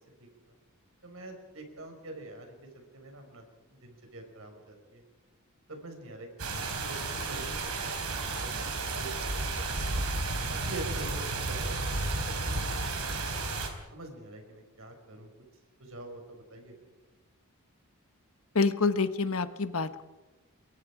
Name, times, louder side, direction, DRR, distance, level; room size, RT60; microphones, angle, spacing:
voice 1, 1.0-3.5 3.7-5.0 5.7-7.9 8.2-9.9 10.5-13.3 13.9-15.3 15.8-16.7, right 2 dB, 65° right, 4 dB, 5.8 m, -45 dB
sound 1, 6.4-13.7, right 3 dB, 85° right, 4.1 m, -32 dB
voice 2, 18.5-20.0, left 4 dB, 70° left, 11 dB, 1.3 m, -27 dB
29.0 x 22.5 x 5.0 m, 1.1 s
head